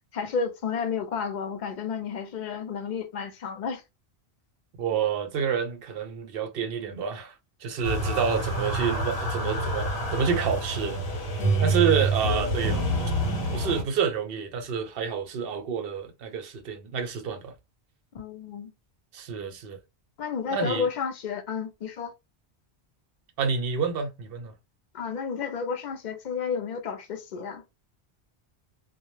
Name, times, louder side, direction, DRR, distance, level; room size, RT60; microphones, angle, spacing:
voice 1, 0.1-3.8 18.1-18.7 20.2-22.1 24.9-27.6, left 6 dB, 55° left, 0.5 m, -31 dB
voice 2, 4.8-7.3 7.6-11.0 11.6-12.9 13.5-17.5 19.1-19.8 20.5-20.9 23.4-24.5, right 6 dB, 65° right, 0.7 m, -28 dB
sound 1, 7.8-13.8, right 1 dB, 75° left, 1.0 m, -27 dB
2.2 x 2.0 x 3.0 m
omnidirectional pair, 1.1 m